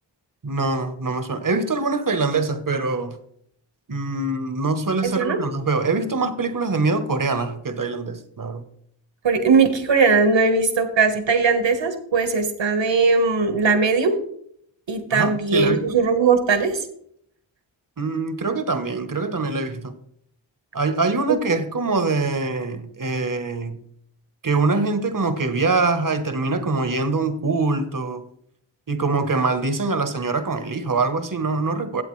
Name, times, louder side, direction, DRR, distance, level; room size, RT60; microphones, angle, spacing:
voice 1, 0.4-3.2 3.9-8.6 15.1-16.0 18.0-20.0 20.7-23.8 24.4-28.2 28.9-32.0, right 3 dB, 40° right, 1.1 m, -24 dB
voice 2, 5.0-5.4 9.2-14.1 14.9-16.8, right 4 dB, 65° right, 1.5 m, -19 dB
12.5 x 7.9 x 3.2 m
cardioid pair, 45°, 48 cm